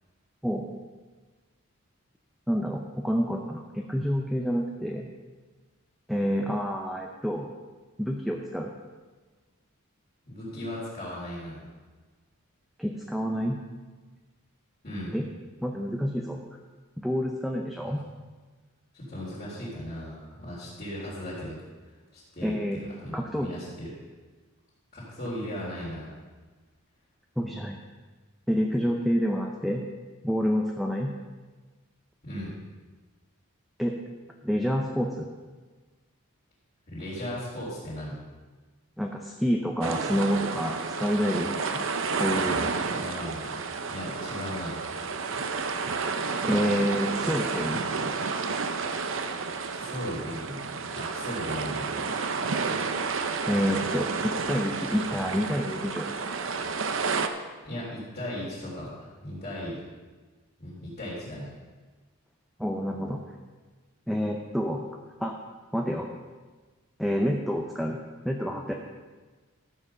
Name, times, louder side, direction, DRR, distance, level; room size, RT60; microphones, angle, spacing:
voice 1, 2.5-5.1 6.1-7.5 8.0-8.7 12.8-13.6 15.1-15.2 15.6-16.4 17.0-18.0 22.4-22.8 23.1-23.5 27.4-27.8 28.5-29.8 30.2-31.1 33.8-34.0 34.4-35.3 39.0-41.9 42.2-42.6 46.4-47.8 53.5-56.1 62.6-63.3 64.1-64.8 65.2-65.3 65.7-66.1 67.0-68.0 68.2-68.7, equal, ahead, 1 dB, 0.6 m, -28 dB
voice 2, 10.2-11.7 14.8-15.1 17.8-17.9 18.9-21.6 22.1-23.9 24.9-26.1 32.2-32.5 36.9-38.2 42.9-43.6 43.9-44.8 49.7-50.6 50.9-52.0 57.6-59.8 60.6-61.5, equal, 40° left, -12 dB, 3.7 m, -37 dB
sound 1, 39.8-57.3, right 4 dB, 60° right, 0.8 m, -31 dB
13.5 x 7.7 x 5.6 m, 1.3 s
head